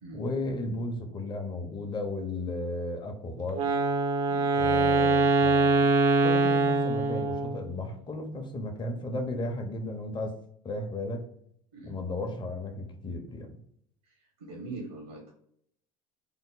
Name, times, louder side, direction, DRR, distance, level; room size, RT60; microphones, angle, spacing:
voice 1, 0.1-3.7 4.5-5.9 6.2-10.3 10.6-11.3 11.8-13.6, left 2 dB, 25° left, 3 dB, 0.8 m, -34 dB
Wind instrument woodwind instrument, 3.5-7.7, right 3 dB, 70° right, 0.7 m, -24 dB
voice 2, 14.4-15.3, right 3 dB, 85° right, -2 dB, 1.3 m, -41 dB
3.6 x 2.1 x 3.8 m, 0.68 s
hypercardioid pair, 80°, 18 cm